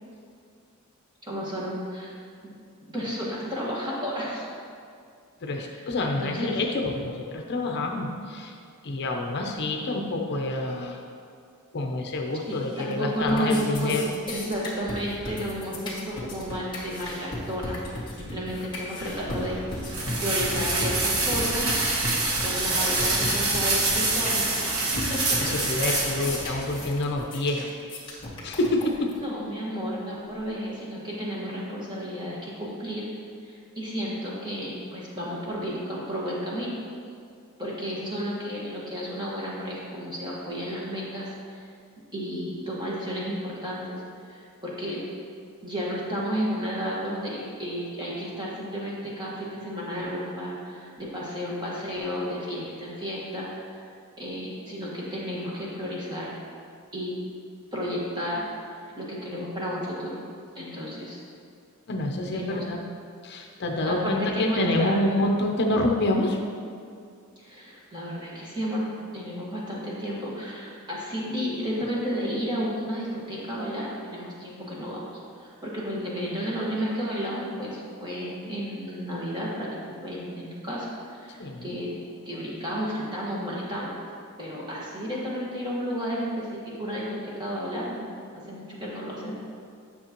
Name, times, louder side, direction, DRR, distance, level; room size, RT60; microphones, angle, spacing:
voice 1, 1.3-2.1 2.4-2.6 2.9-4.5 5.5-6.6 12.5-13.9 14.3-17.8 18.1-21.7 22.4-26.0 29.1-33.1 33.4-36.8 37.6-41.6 42.1-44.0 44.3-45.0 45.6-53.8 54.2-56.3 56.9-57.1 57.7-58.4 59.0-60.2 60.5-61.2 62.2-62.6 63.8-65.0 67.4-75.1 75.4-81.9 82.2-84.0 84.4-88.1 88.5-89.4, equal, 20° right, -6 dB, 1.6 m, -32 dB
voice 2, 5.4-8.6 8.8-11.0 11.7-14.1 25.4-27.7 28.4-29.1 61.9-62.8 63.2-66.4 81.4-81.8, left 1 dB, 50° left, 1 dB, 0.6 m, -27 dB
sound 1, 12.5-12.9 13.2-29.2, left 2 dB, 20° left, 2.0 m, -36 dB
sound 2, 19.0-26.9, right 2 dB, 65° right, 1.2 m, -26 dB
9.5 x 6.6 x 3.0 m, 2.3 s
head